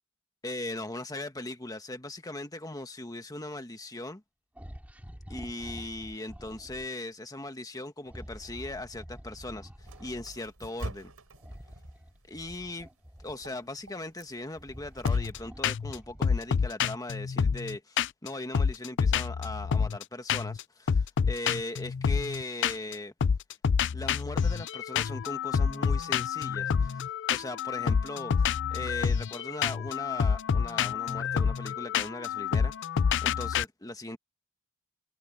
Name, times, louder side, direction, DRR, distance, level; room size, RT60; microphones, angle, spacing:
voice 1, 0.4-4.2 5.3-11.1 12.3-12.9 13.2-23.1 23.9-32.7 33.2-34.2, left 2 dB, 15° left, 1.5 m, -39 dB
sound 1, 4.5-6.9 8.0-10.4 11.4-13.7 14.2-16.6, equal, 5° right, 2.7 m, -47 dB
sound 2, 9.8-15.3, right 1 dB, 80° right, 5.1 m, -46 dB
sound 3, 15.0-15.4 15.6-15.9 16.2-18.3 18.5-20.0 20.3-20.6 20.9-22.9 23.2-33.6, left 6 dB, 55° left, 0.4 m, -28 dB
head